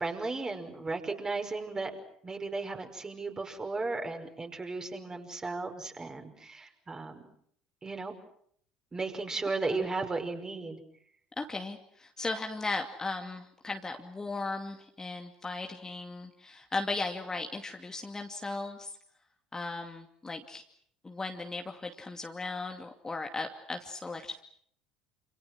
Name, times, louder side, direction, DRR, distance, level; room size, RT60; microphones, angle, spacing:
voice 1, 0.0-1.9 2.2-7.2 7.8-8.1 8.9-10.8, right 3 dB, 20° right, 5 dB, 5.5 m, -35 dB
voice 2, 11.4-19.0 19.5-20.6 21.0-24.4, left 3 dB, 20° left, 3 dB, 2.5 m, -37 dB
28.5 x 28.0 x 6.3 m, 0.65 s
figure-of-eight pair, 60°, 3 cm